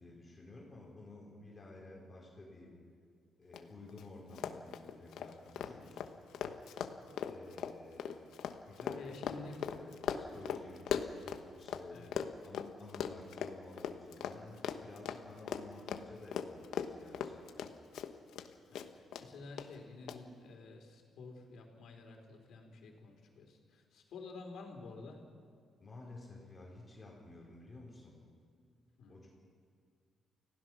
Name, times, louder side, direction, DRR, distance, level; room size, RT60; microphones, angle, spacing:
voice 1, 0.0-2.8 3.4-6.1 7.3-8.3 8.7-12.0 12.4-17.5 25.8-28.1 29.1-29.3, left 2 dB, 20° left, -3 dB, 4.0 m, -53 dB
Run, 3.5-3.6 3.9-4.0 4.3-11.8 12.1-18.5 18.7-19.2 19.6-19.7 20.1-20.2, left 9 dB, 75° left, 1.1 m, -39 dB
voice 2, 5.6-5.9 6.9-7.3 8.9-9.7 10.0-10.3 11.9-12.1 18.7-25.2 29.0-29.3, left 3 dB, 60° left, 2 dB, 3.9 m, -51 dB
29.5 x 16.5 x 6.2 m, 2.1 s
cardioid pair, 175°, 0 cm